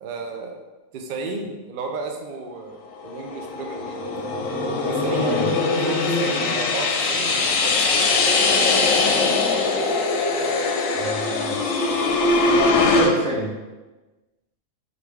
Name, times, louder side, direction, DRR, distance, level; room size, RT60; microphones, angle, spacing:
voice 1, 0.0-0.6 0.9-4.0 4.9-8.1, right 3 dB, 55° right, 2 dB, 0.6 m, -33 dB
sound 1, 3.0-13.1, left 3 dB, 80° left, 1.0 m, -21 dB
voice 2, 5.1-5.5 10.9-11.6 12.5-13.5, right 1 dB, 85° right, -3 dB, 1.4 m, -28 dB
3.9 x 3.2 x 3.5 m, 1.2 s
omnidirectional pair, 1.4 m